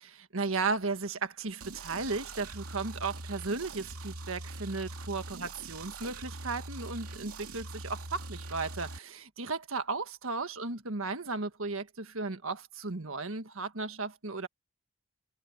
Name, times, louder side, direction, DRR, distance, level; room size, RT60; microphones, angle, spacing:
voice 1, 0.0-14.5, right 3 dB, 65° right, 1.6 m, -35 dB
sound 1, 1.6-9.0, right 2 dB, 90° right, 2.7 m, -43 dB
head